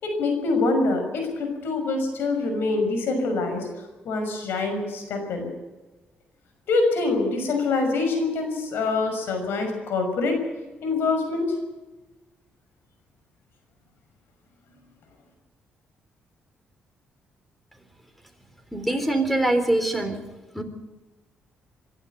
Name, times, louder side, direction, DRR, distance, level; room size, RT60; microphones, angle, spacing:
voice 1, 0.0-3.7 4.0-5.5 6.7-10.4 10.8-11.5, left 3 dB, 75° left, 5 dB, 6.0 m, -25 dB
voice 2, 18.7-20.2 20.5-20.6, right 1 dB, ahead, 9 dB, 3.7 m, -23 dB
24.5 x 12.0 x 9.2 m, 1.2 s
cardioid pair, 90°, 4 cm